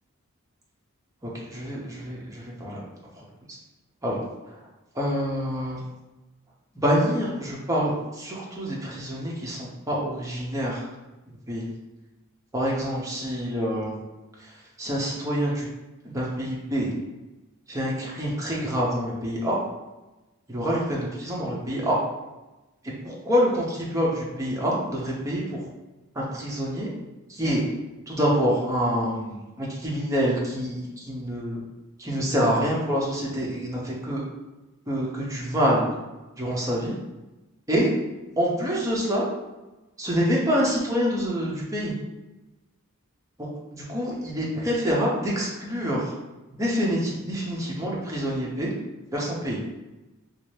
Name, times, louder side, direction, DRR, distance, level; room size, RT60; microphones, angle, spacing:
voice 1, 1.5-2.8 4.0-4.2 5.0-5.8 6.8-10.9 11.5-11.7 12.5-14.0 14.8-15.7 16.0-16.9 17.7-19.6 20.5-22.0 23.0-25.7 26.2-26.9 27.3-27.6 28.1-31.6 32.0-34.2 34.9-35.9 36.4-37.0 37.7-37.9 38.4-39.3 40.0-41.9 43.4-46.1 46.6-48.7 49.1-49.6, equal, 15° right, -5 dB, 0.7 m, -26 dB
3.1 x 2.7 x 3.1 m, 1.1 s
head